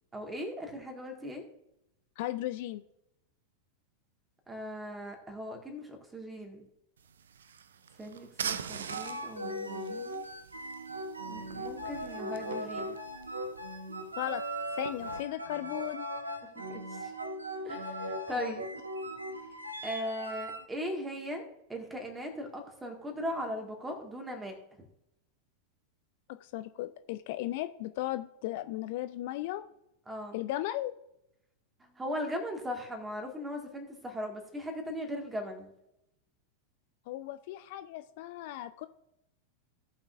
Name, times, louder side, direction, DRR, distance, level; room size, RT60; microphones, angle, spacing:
voice 1, 0.1-1.4 4.5-6.7 8.0-10.2 11.2-13.0 16.6-17.1 17.6-18.7 19.8-21.4 21.7-24.6 30.1-30.4 31.8-35.7, equal, 10° right, 3 dB, 1.9 m, -39 dB
voice 2, 2.2-2.8 14.2-14.4 14.8-16.1 18.4-18.6 26.3-29.6 30.3-30.9 37.1-38.9, left 15 dB, 50° left, 11 dB, 0.4 m, -36 dB
sound 1, 7.0-15.2, right 7 dB, 65° right, 0.5 m, -44 dB
sound 2, 8.9-20.6, equal, 80° right, 1.0 m, -39 dB
17.5 x 5.8 x 2.6 m, 0.85 s
figure-of-eight pair, 90°, 0 cm